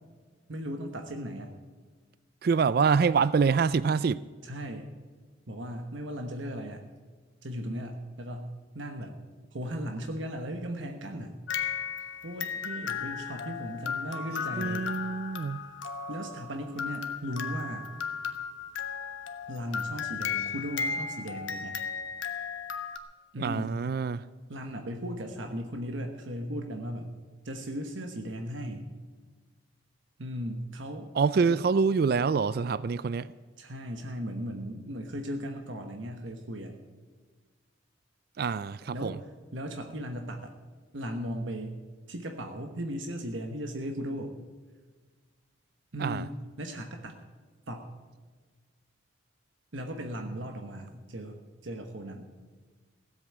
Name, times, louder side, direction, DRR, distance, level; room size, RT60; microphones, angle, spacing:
voice 1, 0.5-1.5 4.4-4.9 5.5-6.8 7.4-9.2 9.5-11.4 12.2-14.9 16.1-17.9 19.5-21.8 23.3-23.8 24.5-27.1 27.4-28.9 30.2-31.1 31.4-31.6 33.6-36.8 38.9-39.2 39.5-40.5 40.9-41.8 42.1-44.3 45.9-47.2 47.7-47.9 49.7-52.3, equal, 70° right, 1.2 m, -37 dB
voice 2, 2.4-4.2 14.5-15.6 23.4-24.2 31.1-33.3 38.4-39.2 46.0-46.3, right 5 dB, 50° right, 0.3 m, -26 dB
sound 1, 11.5-23.0, left 6 dB, 70° left, 1.2 m, -35 dB
16.5 x 8.0 x 8.7 m
head